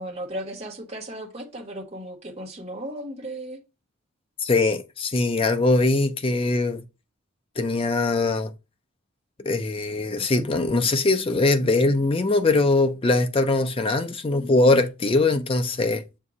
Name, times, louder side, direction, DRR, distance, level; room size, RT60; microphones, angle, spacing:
voice 1, 0.0-3.6, right 1 dB, 30° right, 1.0 m, -35 dB
voice 2, 4.4-6.8 7.6-8.5 9.4-16.0, left 2 dB, 25° left, 0.5 m, -21 dB
7.3 x 2.7 x 4.8 m
head